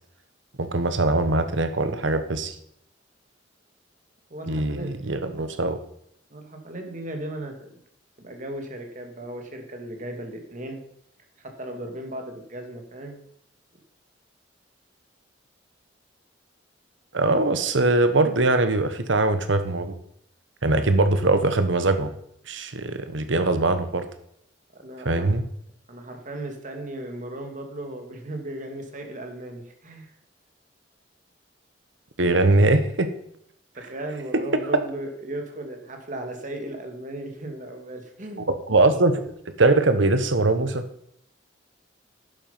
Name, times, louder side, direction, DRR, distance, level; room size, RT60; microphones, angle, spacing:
voice 1, 0.6-2.5 4.5-5.8 17.1-19.9 20.6-22.1 22.5-24.1 25.0-25.4 32.2-33.1 34.3-34.4 38.5-39.3 39.6-40.8, right 2 dB, 85° right, 9 dB, 1.2 m, -21 dB
voice 2, 4.3-4.9 5.2-5.4 6.3-7.7 8.2-10.8 11.4-13.2 24.7-25.4 25.9-30.1 33.7-38.5, right 1 dB, 40° right, 4 dB, 2.1 m, -36 dB
11.0 x 7.5 x 5.6 m, 0.71 s
head